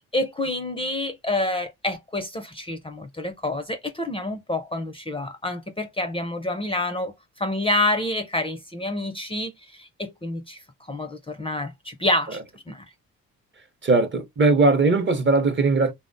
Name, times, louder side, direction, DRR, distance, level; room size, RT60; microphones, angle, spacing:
voice 1, 0.1-10.6 10.9-12.4 12.7-12.8, left 1 dB, 15° left, 0.5 m, -28 dB
voice 2, 13.8-15.9, right 3 dB, 35° right, 0.7 m, -19 dB
3.2 x 2.1 x 2.6 m
supercardioid pair, 60°, 35 cm